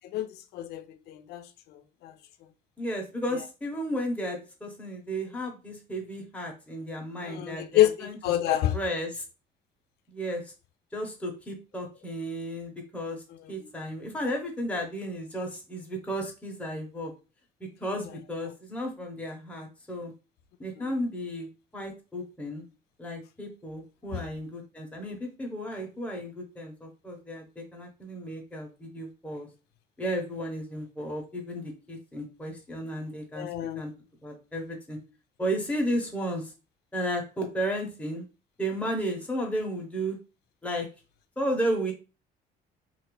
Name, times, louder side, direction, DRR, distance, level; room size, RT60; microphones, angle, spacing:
voice 1, 0.5-2.1 7.2-8.8 13.6-13.9 20.8-20.9 24.1-24.2 33.3-33.8, left 13 dB, 75° left, 0.5 m, -28 dB
voice 2, 2.8-8.2 8.5-9.2 10.1-10.4 10.9-13.2 13.5-17.1 17.6-20.1 20.6-21.5 21.7-22.6 23.0-29.5 30.0-33.5 33.7-33.9 34.2-35.0 35.4-36.5 36.9-38.2 38.6-40.2 40.6-40.9 41.4-41.9, equal, 10° left, 1.0 m, -33 dB
2.7 x 2.5 x 3.2 m
cardioid pair, 110°, 17 cm